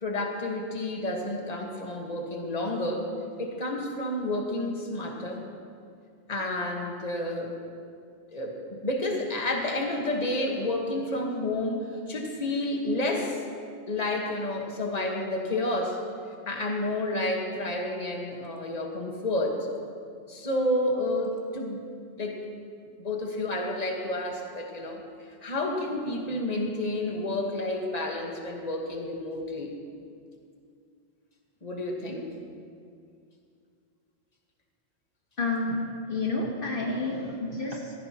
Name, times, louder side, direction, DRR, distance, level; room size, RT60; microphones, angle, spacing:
voice 1, 0.0-3.1 3.4-5.5 6.3-7.5 8.3-13.4 13.9-16.0 16.5-19.6 20.3-21.8 22.2-22.4 23.0-25.0 25.4-29.7 31.6-32.3, left 1 dB, 35° left, 1 dB, 1.5 m, -30 dB
voice 2, 35.4-35.8 36.1-37.9, left 3 dB, 55° left, -1 dB, 1.3 m, -29 dB
17.0 x 15.5 x 2.9 m, 2.3 s
omnidirectional pair, 1.1 m